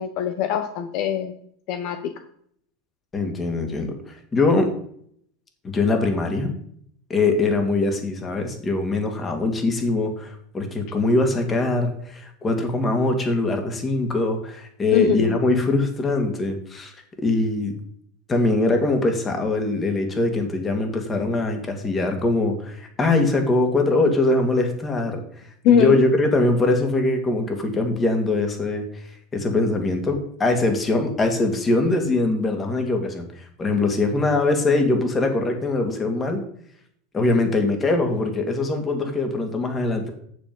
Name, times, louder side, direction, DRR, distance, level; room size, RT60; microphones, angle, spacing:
voice 1, 0.0-1.3 1.7-2.0 14.9-15.4 25.6-26.0, left 8 dB, 55° left, 8 dB, 0.9 m, -21 dB
voice 2, 3.1-4.7 5.6-6.5 7.1-16.9 17.2-17.7 18.3-25.2 25.7-29.0 29.3-36.4 37.1-40.1, left 2 dB, 25° left, 5 dB, 2.5 m, -22 dB
9.0 x 7.1 x 5.4 m, 0.65 s
supercardioid pair, 110°, 0 cm